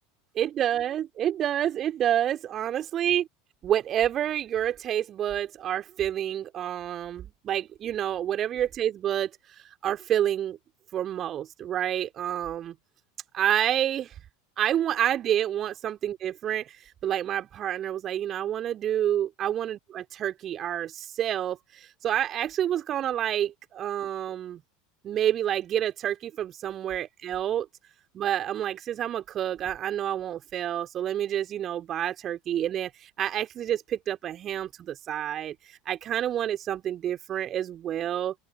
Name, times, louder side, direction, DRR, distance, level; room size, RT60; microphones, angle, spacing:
voice 1, 0.4-3.3 3.6-10.6 10.9-12.7 13.3-14.1 14.6-24.6 25.0-27.7 28.1-38.3, right 11 dB, 35° right, 2.6 m, -28 dB
open air
figure-of-eight pair, 75°, 0 cm